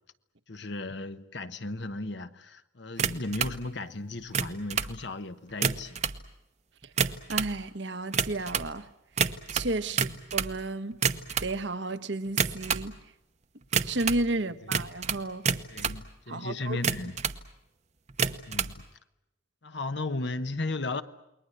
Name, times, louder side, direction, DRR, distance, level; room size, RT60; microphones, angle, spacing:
voice 1, 0.5-6.0 15.7-17.1 18.5-18.8 19.6-21.0, left 2 dB, 55° left, 1.1 m, -35 dB
sound 1, 3.0-3.6 4.2-4.9 5.5-6.2 6.8-7.6 8.1-8.7 9.2-10.6 10.9-11.5 12.3-12.9 13.7-14.3 14.7-16.0 16.7-17.4 18.1-18.7, right 6 dB, 35° right, 0.9 m, -28 dB
voice 2, 7.3-8.9 9.5-11.0 11.4-12.9 13.8-15.5 16.3-16.8, right 2 dB, 60° right, 1.1 m, -32 dB
28.5 x 21.5 x 7.9 m
head